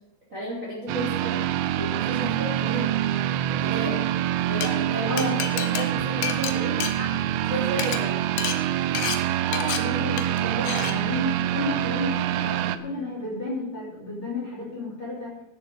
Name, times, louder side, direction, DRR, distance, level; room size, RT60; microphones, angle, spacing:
voice 1, 0.3-1.4 1.8-2.9 3.5-4.0 4.4-6.9 7.5-8.2, equal, 20° right, -4 dB, 2.4 m, -33 dB
sound 1, 0.9-12.8, right 12 dB, 90° right, 3.4 m, -26 dB
Glass, 4.4-4.7 5.2-7.5 7.7-8.0 8.4-8.6 9.0-9.2 9.5-9.8 10.2-10.4 10.7-10.9, left 9 dB, 80° left, 3.7 m, -30 dB
voice 2, 9.5-15.3, left 1 dB, 30° left, -4 dB, 3.0 m, -32 dB
13.5 x 7.3 x 7.7 m, 0.94 s
omnidirectional pair, 6.0 m